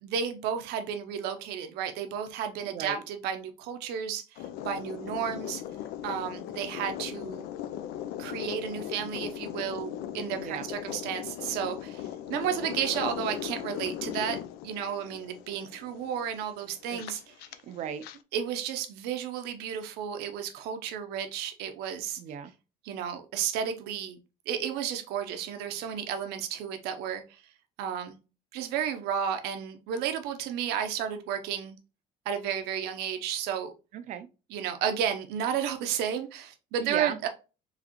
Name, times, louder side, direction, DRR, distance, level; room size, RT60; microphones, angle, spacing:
voice 1, 0.0-5.6 6.0-7.5 8.2-14.4 14.6-17.3 18.3-22.2 22.8-24.2 24.5-27.4 27.8-28.2 28.5-31.7 32.3-33.7 34.5-37.3, right 8 dB, 80° right, 0.8 m, -32 dB
voice 2, 2.7-3.0 10.4-10.7 16.9-17.0 17.7-18.0 22.2-22.5 33.9-34.3 36.8-37.2, right 9 dB, 50° right, 0.5 m, -36 dB
sound 1, 4.3-18.2, left 11 dB, 75° left, 0.5 m, -38 dB
4.9 x 3.2 x 3.0 m
cardioid pair, 155°, 16 cm